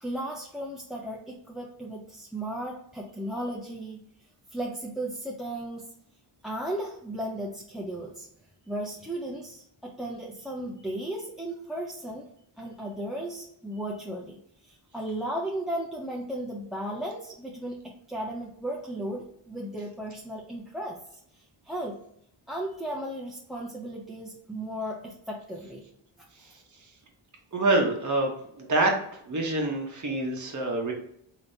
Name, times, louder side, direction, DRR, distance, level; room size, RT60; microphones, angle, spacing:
voice 1, 0.0-4.0 4.5-5.8 6.4-8.3 8.7-12.3 12.6-22.0 22.5-25.8, right 1 dB, ahead, -2 dB, 0.4 m, -35 dB
voice 2, 27.5-29.0 29.3-30.9, right 2 dB, 35° right, 1 dB, 0.9 m, -26 dB
3.5 x 2.8 x 2.7 m, 0.68 s
wide cardioid pair, 60°, 50 cm